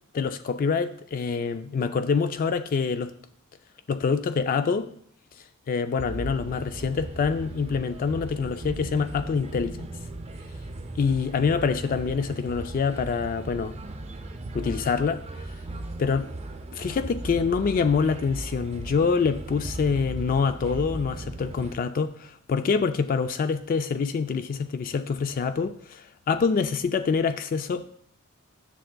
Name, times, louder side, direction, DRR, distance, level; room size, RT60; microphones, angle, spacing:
voice 1, 0.1-3.1 3.9-4.9 5.7-9.9 11.0-13.8 14.5-15.2 16.0-16.3 16.7-27.9, left 5 dB, 40° left, 0.3 m, -26 dB
sound 1, 6.0-21.8, right 2 dB, 30° right, 0.5 m, -37 dB
10.0 x 6.4 x 2.2 m
head